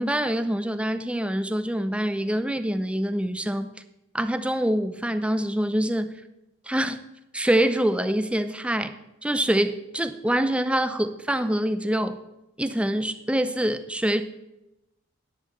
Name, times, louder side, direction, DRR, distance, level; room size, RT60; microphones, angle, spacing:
voice 1, 0.0-3.7 4.1-6.2 6.7-7.0 7.3-9.0 9.2-12.2 12.6-14.2, right 1 dB, 5° right, 11 dB, 0.5 m, -25 dB
9.6 x 8.9 x 7.4 m, 0.92 s
head